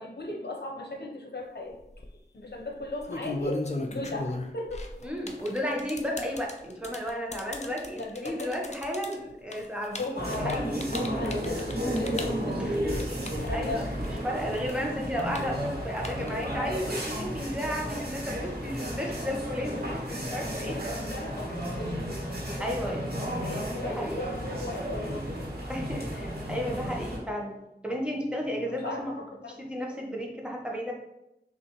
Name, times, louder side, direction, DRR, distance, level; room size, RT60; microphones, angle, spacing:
voice 1, 0.0-1.7 2.3-4.9 8.0-8.5 9.9-13.9 14.4-14.5 18.5-19.0 20.5-25.3 28.7-29.6, left 2 dB, 70° left, 0 dB, 0.8 m, -37 dB
sound 1, 1.7-2.1 2.8-14.2 14.5-16.6, left 2 dB, 40° left, 0.5 m, -37 dB
voice 2, 5.0-11.1 12.7-12.8 13.5-20.8 22.6-23.0 23.6-24.2 25.7-27.6 27.8-29.1 29.4-30.9, equal, 5° right, -1 dB, 1.0 m, -33 dB
sound 2, 10.1-27.2, equal, 65° right, 1.3 m, -33 dB
5.9 x 2.5 x 3.0 m, 0.88 s
wide cardioid pair, 40°, 18 cm